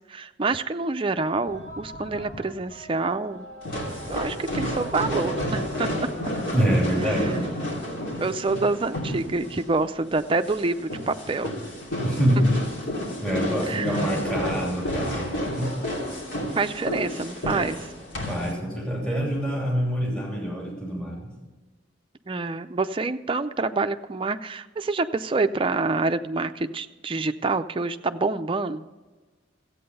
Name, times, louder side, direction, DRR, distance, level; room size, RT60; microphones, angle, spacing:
voice 1, 0.0-3.5 4.1-5.9 7.0-7.3 8.2-11.5 13.7-14.0 16.6-17.9 22.3-28.8, right 3 dB, 25° right, 9 dB, 0.4 m, -27 dB
sound 1, 1.4-6.8, equal, 35° left, 1.9 m, -42 dB
sound 2, 3.6-18.5, equal, 75° left, 2.8 m, -30 dB
voice 2, 6.5-7.5 12.0-12.6 13.2-15.8 18.3-21.3, equal, 5° left, -3 dB, 2.8 m, -26 dB
14.5 x 8.6 x 5.5 m, 1.3 s
head